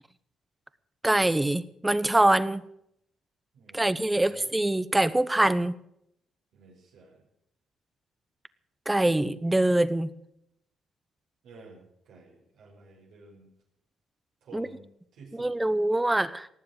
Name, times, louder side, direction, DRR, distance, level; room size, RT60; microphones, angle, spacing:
voice 1, 1.0-2.6 3.7-5.7 8.9-10.1 14.5-14.7 15.3-16.5, right 1 dB, 10° right, 16 dB, 0.9 m, -24 dB
voice 2, 3.5-4.5 6.5-7.3 11.4-13.5 14.4-15.5, right 3 dB, 80° right, -3 dB, 5.3 m, -52 dB
18.5 x 7.7 x 8.7 m, 0.76 s
cardioid pair, 90°, 0 cm